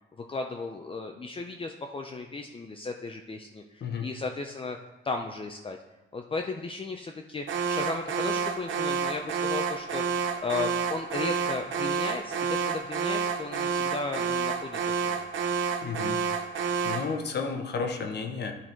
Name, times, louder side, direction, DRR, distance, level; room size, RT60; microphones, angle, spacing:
voice 1, 0.2-4.8 5.0-5.8 6.1-15.3, left 3 dB, 25° left, 3 dB, 0.6 m, -35 dB
Alarm, 7.5-17.2, right 6 dB, 65° right, 1.0 m, -29 dB
voice 2, 15.8-16.2 16.8-18.5, left 5 dB, 55° left, 4 dB, 1.0 m, -32 dB
10.0 x 4.1 x 4.5 m, 1.1 s
cardioid pair, 85°, 21 cm